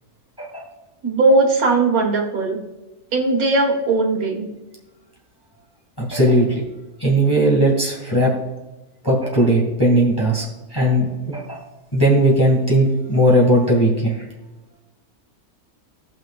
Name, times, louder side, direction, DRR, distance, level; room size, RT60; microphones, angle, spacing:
voice 1, 1.0-2.6 3.1-4.5, right 3 dB, 70° right, 0 dB, 2.1 m, -18 dB
voice 2, 6.0-6.7 7.0-8.3 9.0-10.4 10.7-11.6 11.9-14.3, right 1 dB, 15° left, -3 dB, 1.9 m, -17 dB
17.5 x 6.0 x 2.4 m, 1.1 s
omnidirectional pair, 1.6 m